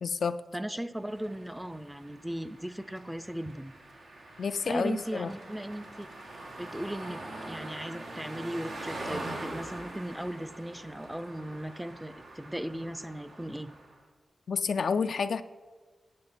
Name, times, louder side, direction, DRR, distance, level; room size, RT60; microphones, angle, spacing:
voice 1, 0.0-0.4 4.4-5.3 14.5-15.4, left 5 dB, 75° left, 10 dB, 0.3 m, -29 dB
voice 2, 0.5-3.7 4.7-6.1 6.6-7.2 7.5-13.7, right 1 dB, 5° right, 13 dB, 0.5 m, -37 dB
sound 1, 1.0-14.0, right 2 dB, 85° right, 1.5 m, -43 dB
10.5 x 7.1 x 4.2 m, 1.4 s
cardioid pair, 45°, 0 cm